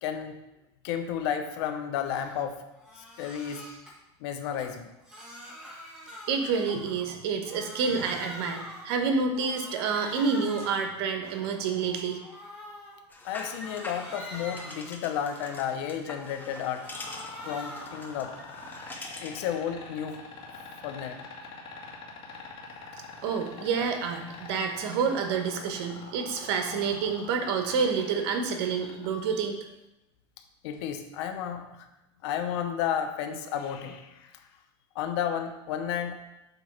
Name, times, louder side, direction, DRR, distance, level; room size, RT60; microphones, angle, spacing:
voice 1, 0.0-0.3 0.8-2.6 3.0-3.6 4.2-4.9 13.2-16.8 17.4-18.3 19.2-20.2 20.8-21.2 26.7-26.8 30.6-31.9 32.2-34.3 34.9-36.2, left 9 dB, 70° left, 6 dB, 1.0 m, -32 dB
Crying sobbing, 2.2-2.4 2.8-3.9 4.4-7.2 7.4-9.0 9.3-10.9 11.3-13.0 13.4-15.7 16.1-18.0 18.4-20.8, equal, 5° right, 1.7 m, -46 dB
voice 2, 6.3-12.2 23.2-29.6, right 5 dB, 70° right, 5 dB, 1.2 m, -28 dB
weights rope, 13.1-19.5, left 2 dB, 15° left, 1.0 m, -44 dB
sound 1, 16.9-29.1 30.7-30.8, left 5 dB, 40° left, 1.8 m, -44 dB
8.0 x 3.1 x 5.9 m, 0.92 s
supercardioid pair, 135°, 14 cm